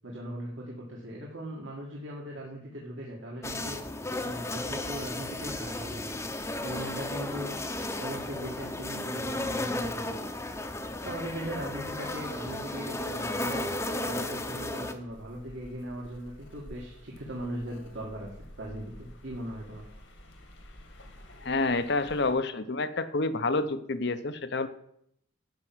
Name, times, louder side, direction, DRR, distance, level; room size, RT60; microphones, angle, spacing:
voice 1, 0.0-3.8 4.2-6.1 6.6-7.7 8.0-10.3 11.0-13.7 14.0-19.9, right 1 dB, 75° right, -3 dB, 2.2 m, -39 dB
sound 1, 3.4-14.9, left 2 dB, 15° left, 0.8 m, -34 dB
sound 2, 15.1-22.3, left 1 dB, 75° left, 2.3 m, -50 dB
voice 2, 21.4-24.7, left 3 dB, 60° left, 12 dB, 0.9 m, -28 dB
12.0 x 5.9 x 8.0 m, 0.72 s
head